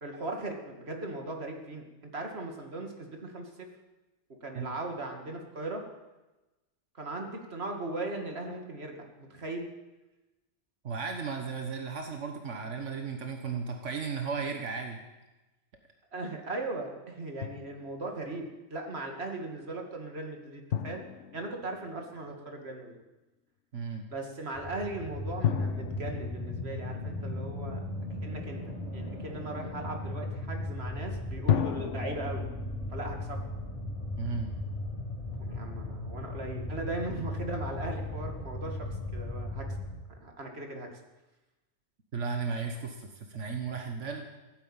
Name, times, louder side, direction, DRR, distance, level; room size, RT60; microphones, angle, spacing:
voice 1, 0.0-3.7 4.4-5.8 6.9-9.7 16.1-21.0 21.3-23.0 24.1-27.8 28.2-32.4 32.9-33.4 35.4-39.7 40.2-41.0, right 2 dB, 60° right, 3 dB, 2.5 m, -38 dB
voice 2, 10.8-15.0 23.7-24.0 34.2-34.5 42.1-44.3, right 5 dB, 90° right, 4 dB, 1.7 m, -35 dB
Drum, 17.4-18.2 20.7-22.5 25.4-27.9 31.5-34.6, left 9 dB, 90° left, 1.1 m, -35 dB
sound 1, 24.5-40.0, left 1 dB, 30° left, 7.7 m, -37 dB
16.0 x 10.0 x 8.9 m, 1.1 s
omnidirectional pair, 1.2 m